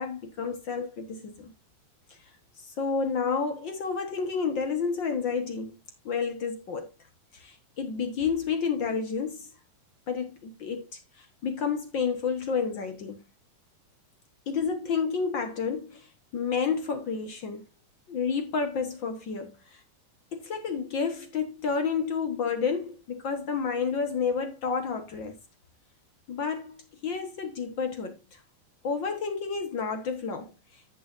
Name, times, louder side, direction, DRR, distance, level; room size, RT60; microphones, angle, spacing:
voice 1, 0.0-1.5 2.1-2.2 2.6-5.8 6.0-6.9 7.3-9.5 10.1-13.2 14.5-16.1 16.3-17.6 18.1-19.8 20.3-25.4 26.3-26.7 27.0-28.4 28.8-30.8, left 5 dB, 60° left, 1.2 m, -30 dB
14.5 x 6.8 x 2.5 m
omnidirectional pair, 3.9 m